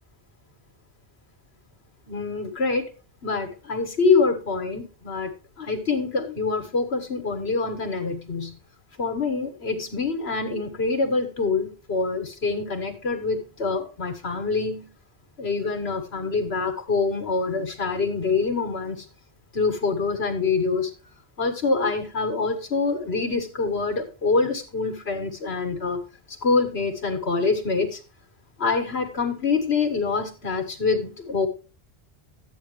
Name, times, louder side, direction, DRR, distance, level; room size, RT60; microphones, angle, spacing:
voice 1, 2.1-2.9 3.2-5.3 5.6-8.6 9.0-14.9 15.4-19.1 19.5-20.9 21.4-26.0 26.4-28.0 28.6-31.5, left 4 dB, 85° left, 5 dB, 1.9 m, -25 dB
12.0 x 8.8 x 3.1 m, 0.35 s
omnidirectional pair, 1.0 m